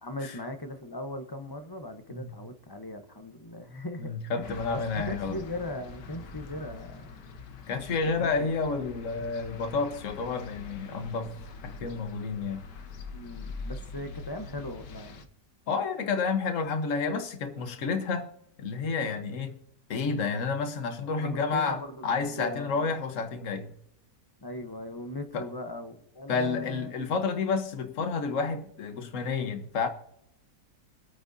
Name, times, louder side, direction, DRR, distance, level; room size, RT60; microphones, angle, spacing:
voice 1, 0.0-7.1 8.2-8.4 13.1-15.3 21.2-22.9 24.4-26.9, left 1 dB, 20° left, 0.6 m, -39 dB
voice 2, 4.0-5.4 7.7-11.3 11.6-12.6 15.7-18.3 18.6-19.6 19.9-23.7 25.3-25.5 26.3-29.9, left 4 dB, 50° left, 1.4 m, -30 dB
sound 1, 4.4-15.2, left 4 dB, 75° left, 1.7 m, -44 dB
25.5 x 8.7 x 2.7 m
omnidirectional pair, 1.8 m